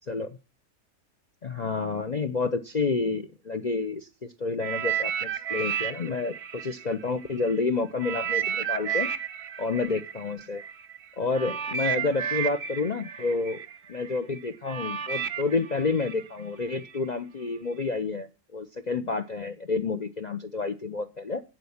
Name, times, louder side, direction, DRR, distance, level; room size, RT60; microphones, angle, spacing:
voice 1, 0.1-0.4 1.4-9.1 9.6-10.6 11.2-13.6 13.9-21.4, left 4 dB, 55° left, 9 dB, 0.4 m, -29 dB
sound 1, 4.6-7.5 8.0-17.0 17.7-17.8, right 9 dB, 55° right, 0.8 m, -32 dB
8.5 x 7.8 x 7.1 m, 0.33 s
omnidirectional pair, 1.7 m